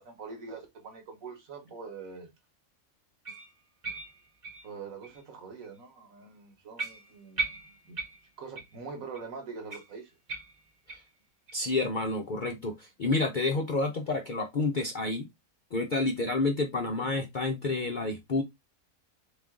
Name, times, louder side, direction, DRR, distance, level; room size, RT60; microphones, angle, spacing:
voice 1, 0.0-2.3 4.6-7.4 7.8-8.0 8.4-10.2 16.8-17.2, right 5 dB, 70° right, 1.6 m, -44 dB
sound 1, 3.2-5.2 5.6-5.8 6.2-6.3 6.8-8.8 9.1-9.2 9.7-11.2 11.5-11.6 12.1-12.2 12.7-12.8, right 3 dB, 40° right, 1.0 m, -39 dB
voice 2, 11.5-15.3 15.7-18.4, left 3 dB, 55° left, 0.5 m, -29 dB
3.6 x 3.1 x 3.6 m
omnidirectional pair, 1.5 m